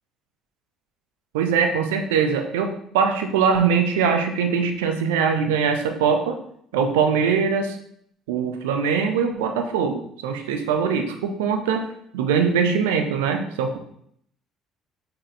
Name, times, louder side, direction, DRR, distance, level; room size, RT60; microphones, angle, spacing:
voice 1, 1.3-6.4 6.7-7.8 8.3-13.8, right 6 dB, 70° right, 5 dB, 0.5 m, -22 dB
6.2 x 2.2 x 3.8 m, 0.69 s
figure-of-eight pair, 55°, 0 cm